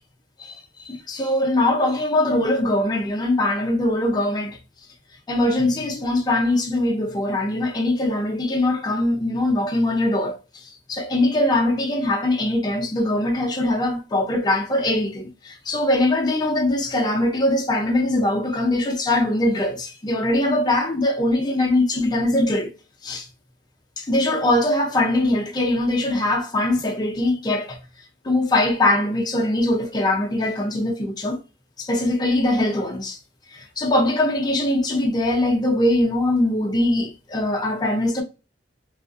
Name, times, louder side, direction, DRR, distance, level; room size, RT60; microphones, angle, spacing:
voice 1, 0.8-4.6 5.3-10.4 10.9-22.7 23.0-23.3 24.0-27.8 28.2-31.4 31.8-33.2 33.5-38.2, left 1 dB, 20° left, 0.4 m, -22 dB
2.5 x 2.3 x 2.4 m
head